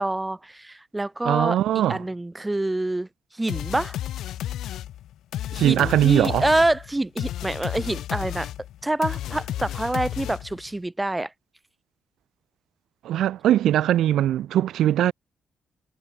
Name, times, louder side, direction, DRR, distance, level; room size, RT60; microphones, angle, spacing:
voice 1, 0.0-1.6 1.9-3.1 3.4-4.0 5.5-8.5 8.8-11.3, right 2 dB, 10° right, 0.7 m, -26 dB
voice 2, 1.2-2.0 5.6-6.4 13.0-15.1, right 12 dB, 80° right, 0.6 m, -21 dB
sound 1, 3.5-10.7, left 12 dB, 90° left, 5.8 m, -32 dB
cardioid pair, 180°, 0 cm